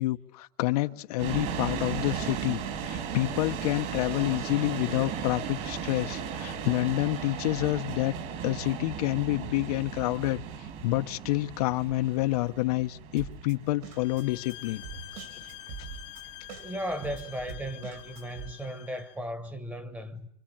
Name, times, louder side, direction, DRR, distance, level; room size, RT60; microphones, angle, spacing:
voice 1, 0.0-8.1 8.4-10.4 10.8-14.8 15.2-15.3, left 18 dB, 75° left, 1.1 m, -28 dB
sound 1, 1.2-18.2, right 7 dB, 45° right, 2.4 m, -37 dB
Drum kit, 13.2-18.5, right 6 dB, 60° right, 3.6 m, -44 dB
sound 2, 13.9-19.2, left 18 dB, 40° left, 1.2 m, -47 dB
voice 2, 16.6-20.3, equal, 10° right, 1.3 m, -36 dB
25.5 x 25.0 x 8.8 m
supercardioid pair, 170°, 20 cm